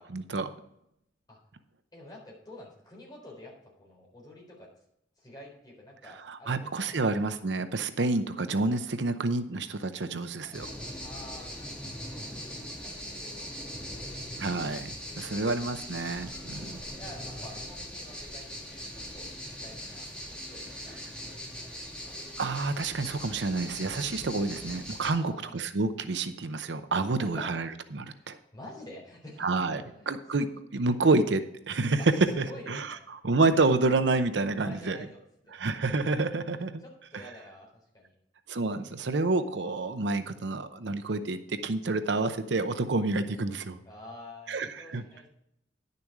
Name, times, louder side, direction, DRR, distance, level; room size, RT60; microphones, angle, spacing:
voice 1, 0.1-0.5 6.3-10.7 14.4-16.8 22.4-28.4 29.4-29.8 30.1-32.0 32.4-32.9 33.2-35.0 35.5-36.8 38.5-43.8 44.5-45.0, right 3 dB, 75° right, 10 dB, 0.7 m, -29 dB
voice 2, 1.9-4.7 5.2-7.0 10.4-10.6 11.0-14.0 15.0-15.6 17.0-19.3 19.6-22.2 25.1-25.6 27.2-27.6 28.0-30.1 32.0-33.0 34.5-35.6 36.8-38.1 43.9-45.3, left 1 dB, 20° left, -2 dB, 4.0 m, -49 dB
sound 1, 10.5-25.1, equal, 5° left, 2.1 m, -40 dB
10.5 x 6.8 x 4.8 m, 0.78 s
head